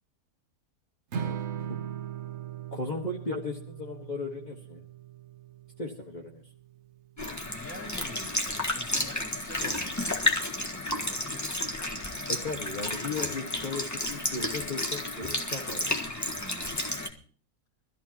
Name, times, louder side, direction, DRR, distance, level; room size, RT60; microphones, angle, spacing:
Strum, 1.1-7.4, right 9 dB, 55° right, 1.1 m, -39 dB
voice 1, 2.7-4.8 5.8-6.4 12.3-15.9, left 3 dB, 30° left, -2 dB, 1.6 m, -36 dB
Sink (filling or washing) / Liquid, 7.2-17.1, left 1 dB, 10° left, 1.4 m, -31 dB
voice 2, 7.4-12.0 16.3-17.2, left 1 dB, 5° right, -1 dB, 2.9 m, -47 dB
22.5 x 14.0 x 3.0 m, 0.42 s
omnidirectional pair, 1.5 m